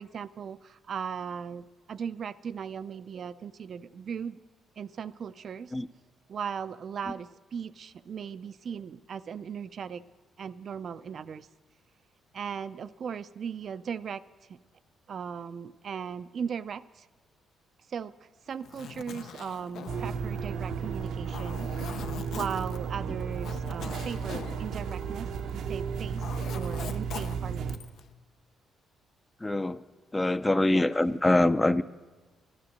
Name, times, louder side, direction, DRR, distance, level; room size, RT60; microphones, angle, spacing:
voice 1, 0.0-4.4 4.8-5.7 6.3-10.0 10.4-11.5 12.3-14.2 14.5-14.6 15.1-17.1 17.9-26.2 26.5-27.8 30.7-30.9, right 7 dB, 55° right, 13 dB, 0.4 m, -38 dB
Zipper (clothing), 18.5-25.6 25.9-28.1, left 8 dB, 70° left, 0.5 m, -43 dB
sound 1, 19.9-27.8, right 6 dB, 75° right, 0.7 m, -34 dB
voice 2, 29.4-29.8 30.1-31.8, left 2 dB, 15° left, 13 dB, 0.4 m, -24 dB
12.0 x 12.0 x 6.4 m, 1.3 s
cardioid pair, 90°, 0 cm